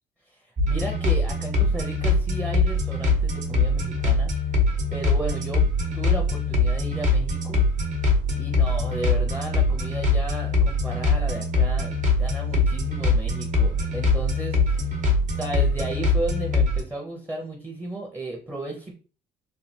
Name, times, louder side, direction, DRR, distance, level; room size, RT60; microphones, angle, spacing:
voice 1, 0.3-4.3 4.9-5.7 5.9-7.6 8.3-11.9 12.2-15.0 15.3-18.9, right 1 dB, 10° right, 1 dB, 0.6 m, -34 dB
sound 1, 0.6-16.8, left 3 dB, 45° right, 0.8 m, -23 dB
3.2 x 2.3 x 2.7 m, 0.39 s
cardioid pair, 110°, 17 cm